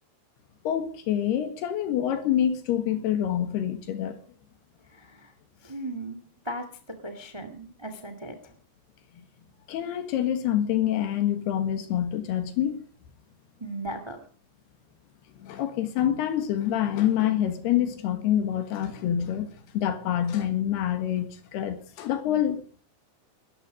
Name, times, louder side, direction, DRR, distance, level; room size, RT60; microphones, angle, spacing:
voice 1, 0.7-4.2 9.7-12.8 15.4-22.8, left 10 dB, 65° left, 3.4 m, -26 dB
voice 2, 4.9-5.3 5.6-6.2 6.4-8.5 13.6-14.2, right 1 dB, 25° right, 0.5 m, -37 dB
20.0 x 13.5 x 5.0 m
omnidirectional pair, 5.3 m